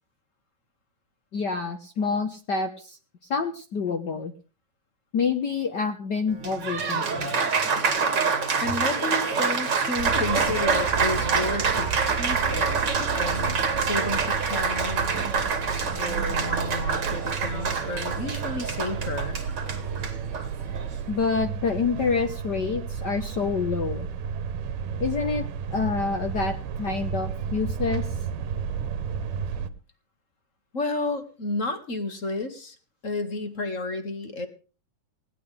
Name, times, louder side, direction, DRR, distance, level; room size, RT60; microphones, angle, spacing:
voice 1, 1.3-3.0 3.3-4.3 5.1-7.4 21.1-24.1 25.0-25.4 25.7-28.1, left 5 dB, 75° left, 8 dB, 0.9 m, -27 dB
Applause, 6.3-21.0, right 5 dB, 35° right, 2.4 m, -26 dB
voice 2, 8.6-12.8 13.1-15.1 15.7-19.4 30.7-32.7 33.0-34.5, left 2 dB, 30° left, 9 dB, 1.6 m, -31 dB
sound 1, 10.0-29.7, right 7 dB, 80° right, 2.7 m, -32 dB
20.0 x 17.0 x 3.4 m, 0.36 s
omnidirectional pair, 3.7 m